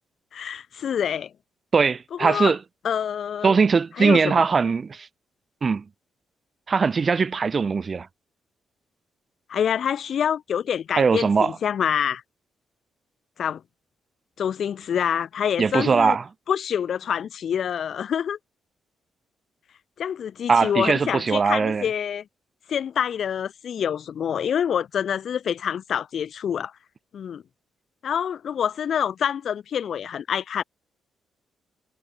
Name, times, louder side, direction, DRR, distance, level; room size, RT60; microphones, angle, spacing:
voice 1, 0.3-1.3 2.1-2.5 2.8-3.6 4.0-4.4 9.5-12.2 13.4-13.6 14.4-16.2 16.5-18.4 20.0-22.2 22.7-26.7 27.1-27.4 28.0-30.6, left 8 dB, 65° left, 1.5 m, -26 dB
voice 2, 1.7-2.6 3.4-5.1 5.6-5.8 6.7-8.1 11.0-11.5 15.6-16.2 20.5-21.9, right 5 dB, 45° right, 0.7 m, -20 dB
supercardioid pair, 55°, 0 cm